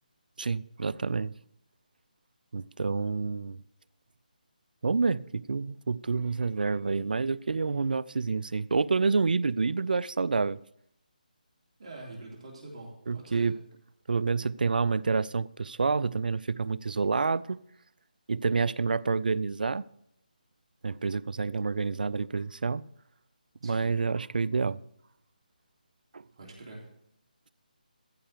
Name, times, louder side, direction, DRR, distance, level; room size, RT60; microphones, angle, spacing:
voice 1, 0.4-1.3 2.5-3.6 4.8-10.6 13.1-13.6 14.1-17.6 18.3-19.8 20.8-22.8 23.6-24.8 26.1-26.2, right 4 dB, 75° right, 0.4 m, -28 dB
voice 2, 11.8-13.6 23.6-23.9 26.4-26.9, right 2 dB, 45° right, 3.5 m, -44 dB
15.0 x 5.6 x 6.6 m
figure-of-eight pair, 160°, 5 cm